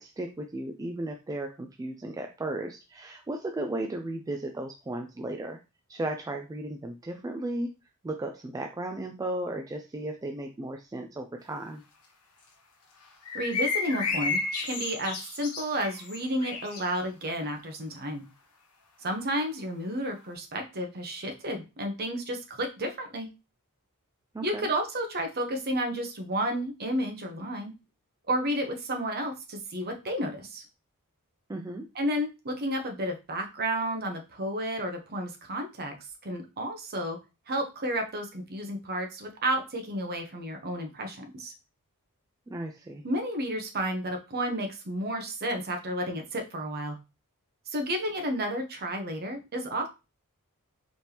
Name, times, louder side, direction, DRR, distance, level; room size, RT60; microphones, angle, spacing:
voice 1, 0.0-5.6 5.9-7.7 8.0-11.8 24.3-24.7 31.5-31.9 42.5-43.0, right 1 dB, 15° right, 4 dB, 0.3 m, -35 dB
sound 1, 13.2-16.9, left 4 dB, 80° left, 1.1 m, -32 dB
voice 2, 13.3-18.2 19.0-23.3 24.4-27.7 28.3-30.6 31.9-35.9 36.2-37.2 37.5-41.5 43.0-47.0 47.7-49.9, right 1 dB, 45° right, 4 dB, 1.0 m, -31 dB
4.3 x 3.4 x 2.9 m, 0.28 s
head